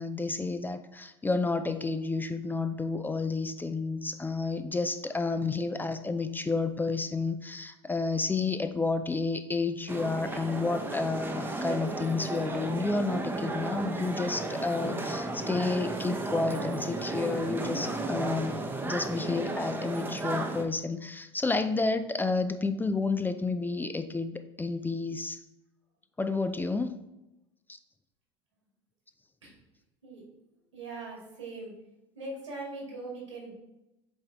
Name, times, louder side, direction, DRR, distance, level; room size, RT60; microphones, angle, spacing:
voice 1, 0.0-18.6 18.9-25.4 26.2-27.0, left 3 dB, 15° left, 9 dB, 0.4 m, -30 dB
sound 1, 9.9-20.6, right 2 dB, 15° right, 0.8 m, -34 dB
voice 2, 30.7-31.7 32.1-33.5, right 2 dB, 90° right, -3 dB, 2.1 m, -40 dB
7.9 x 3.6 x 3.3 m, 0.94 s
hypercardioid pair, 75°, 15 cm